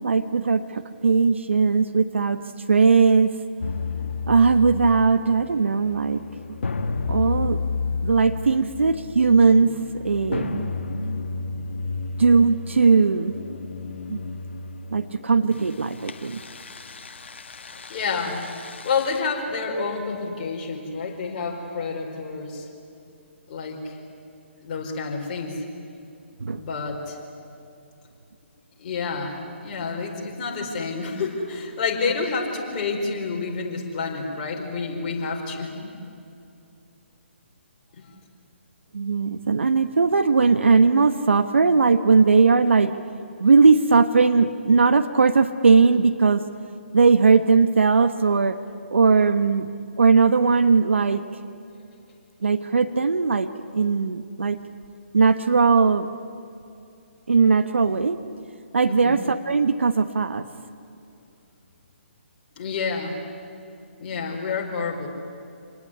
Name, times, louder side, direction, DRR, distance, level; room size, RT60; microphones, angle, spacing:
voice 1, 0.0-2.4 2.7-3.3 4.3-6.2 7.1-7.6 8.0-9.8 10.0-10.7 12.2-13.3 14.1-14.2 14.9-16.4 26.4-26.6 38.9-43.0 43.4-46.4 46.9-48.6 48.9-49.7 50.0-51.2 52.4-54.6 55.1-56.1 57.3-58.2 58.7-60.5, right 4 dB, 75° right, 10 dB, 1.1 m, -19 dB
sound 1, 3.6-19.2, left 4 dB, 65° left, 1.5 m, -32 dB
voice 2, 17.9-18.4 18.8-22.7 23.5-23.9 24.6-25.6 26.6-27.2 28.8-35.7 58.9-59.2 62.6-63.2 64.0-65.1, left 4 dB, 40° left, 1 dB, 4.9 m, -29 dB
27.5 x 19.5 x 10.0 m, 2.6 s
figure-of-eight pair, 140°, 7 cm